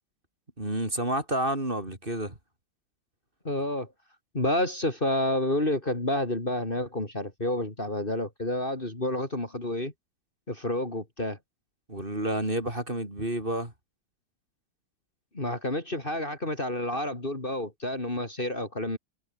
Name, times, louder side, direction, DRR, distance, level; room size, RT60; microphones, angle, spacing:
voice 1, 0.6-2.4 11.9-13.7, right 1 dB, 25° right, 5.0 m, -30 dB
voice 2, 3.4-3.9 4.3-9.9 10.5-11.4 15.3-19.0, left 1 dB, 25° left, 3.7 m, -29 dB
omnidirectional pair, 2.0 m